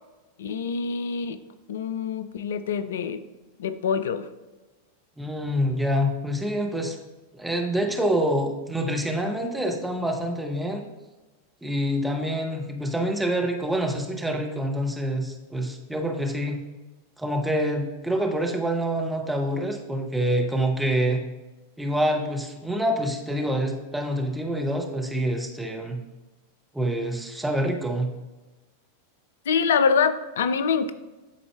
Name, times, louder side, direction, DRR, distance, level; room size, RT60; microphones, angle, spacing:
voice 1, 0.4-1.4 1.7-3.2 3.6-4.3 29.5-30.9, left 6 dB, 60° left, 11 dB, 0.4 m, -25 dB
voice 2, 5.2-7.0 7.3-10.9 11.6-16.6 17.2-21.2 21.8-26.0 26.7-28.1, equal, 5° right, 2 dB, 0.7 m, -26 dB
11.0 x 4.0 x 2.3 m, 1.1 s
figure-of-eight pair, 90°, 0 cm